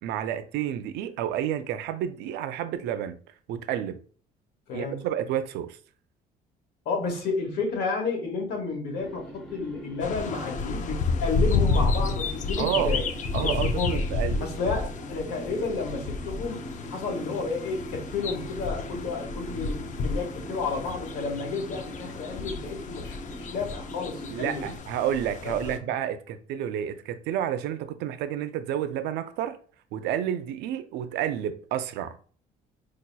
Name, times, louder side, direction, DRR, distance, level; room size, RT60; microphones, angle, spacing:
voice 1, 0.0-3.2 3.5-4.0 4.7-5.8 12.6-13.0 13.3-14.5 24.3-29.6 29.9-32.2, right 10 dB, 85° right, 0.5 m, -30 dB
voice 2, 6.8-13.1 13.4-14.1 14.4-16.6 16.9-24.6 25.4-25.9, left 4 dB, 75° left, 1.5 m, -31 dB
sound 1, 8.9-24.8, right 1 dB, 5° left, 1.1 m, -42 dB
sound 2, 10.0-25.8, left 4 dB, 50° left, 0.5 m, -31 dB
4.6 x 2.9 x 2.2 m
cardioid pair, 110°, 17 cm